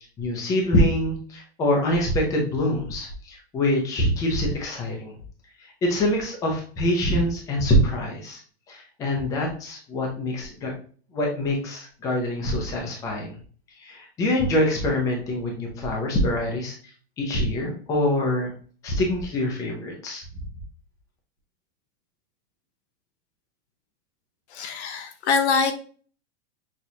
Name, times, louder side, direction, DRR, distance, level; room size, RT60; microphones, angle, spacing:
voice 1, 0.2-5.1 5.8-8.4 8.7-10.7 11.1-13.4 13.8-16.8 17.2-18.5 18.8-20.2, left 1 dB, 10° left, 0 dB, 0.5 m, -25 dB
voice 2, 24.5-25.7, left 5 dB, 90° left, 8 dB, 0.9 m, -24 dB
6.1 x 2.5 x 2.7 m, 0.42 s
supercardioid pair, 175°, 32 cm